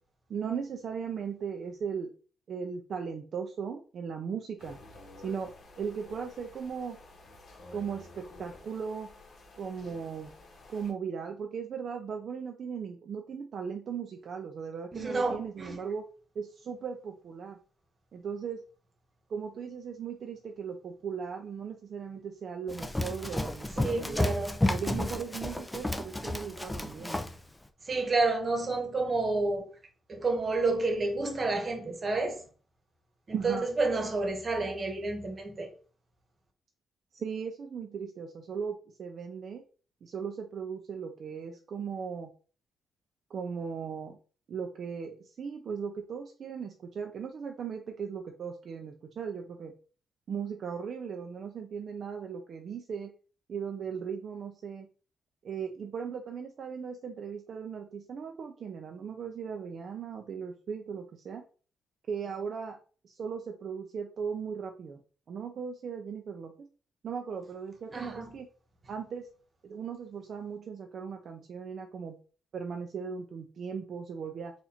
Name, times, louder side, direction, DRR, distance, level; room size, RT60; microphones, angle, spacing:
voice 1, 0.3-2.1 2.5-4.8 5.2-5.5 5.8-7.0 7.7-9.1 9.6-10.3 10.7-16.0 16.4-17.6 18.1-18.6 19.3-24.3 24.7-27.2 33.3-33.7 37.1-39.6 40.0-42.3 43.3-44.2 44.5-49.7 50.3-53.1 53.5-54.9 55.4-61.4 62.1-62.8 63.0-65.0 65.3-66.7 67.0-68.5 68.9-69.2 69.6-72.2 72.5-74.5, right 6 dB, 55° right, 0.5 m, -37 dB
sound 1, 4.6-10.9, left 2 dB, 60° left, 1.6 m, -51 dB
voice 2, 14.9-15.8 23.8-24.7 26.9-27.1 27.8-29.7 30.1-32.4 33.3-35.7 67.9-68.4, right 3 dB, 30° right, 1.1 m, -30 dB
Run, 22.7-27.4, left 1 dB, 10° left, 0.5 m, -32 dB
4.2 x 2.6 x 4.2 m
cardioid pair, 110°, 0 cm